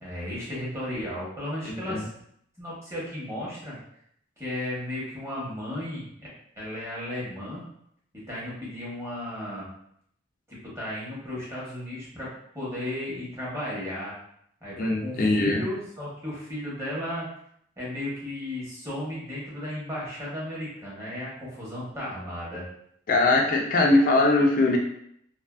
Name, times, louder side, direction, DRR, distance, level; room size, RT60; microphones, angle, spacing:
voice 1, 0.0-2.1 2.6-3.8 4.4-6.3 6.6-7.6 8.3-9.7 10.5-14.1 14.6-17.3 17.8-22.6, left 1 dB, 15° right, -7 dB, 0.9 m, -34 dB
voice 2, 1.7-2.1 14.8-15.6 23.1-24.8, left 2 dB, 45° left, 1 dB, 0.4 m, -21 dB
2.5 x 2.5 x 2.3 m, 0.70 s
head